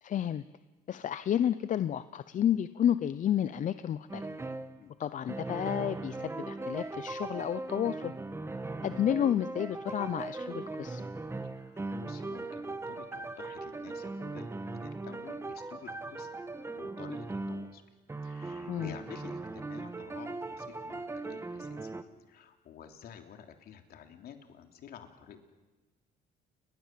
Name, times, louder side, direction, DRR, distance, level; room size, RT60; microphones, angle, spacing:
voice 1, 0.0-0.4 0.9-4.3 5.0-8.1 8.8-11.0 18.7-19.0, left 10 dB, 50° left, 13 dB, 0.8 m, -31 dB
sound 1, 4.1-4.8 5.3-17.8 18.1-22.0, right 2 dB, 15° right, 1.6 m, -39 dB
voice 2, 11.6-16.4 16.7-17.8 18.2-22.0 22.3-25.5, left 8 dB, 65° left, 5 dB, 3.3 m, -51 dB
29.5 x 22.5 x 7.6 m, 1.2 s
cardioid pair, 110°, 17 cm